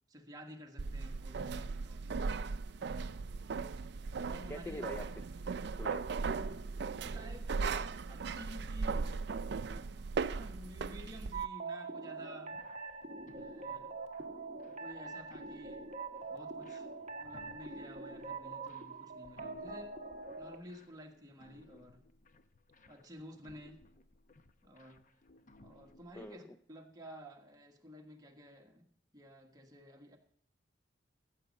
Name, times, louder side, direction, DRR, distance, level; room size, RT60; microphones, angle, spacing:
voice 1, 0.1-2.3 4.2-4.9 6.9-9.2 9.6-9.9 10.3-12.7 13.3-13.9 14.7-15.9 16.3-19.9 20.4-22.0 22.9-23.8 24.6-25.0 25.6-30.2, equal, 20° right, 2 dB, 1.4 m, -52 dB
sound 1, 0.8-11.4, right 4 dB, 60° right, 0.4 m, -38 dB
voice 2, 4.2-5.0 5.8-6.2 26.2-26.4, left 1 dB, 10° left, 8 dB, 0.4 m, -44 dB
sound 2, 11.3-20.6, right 4 dB, 40° right, 0.9 m, -44 dB
sound 3, 12.5-26.3, left 1 dB, 45° left, 0.7 m, -61 dB
14.5 x 7.4 x 5.3 m, 0.62 s
head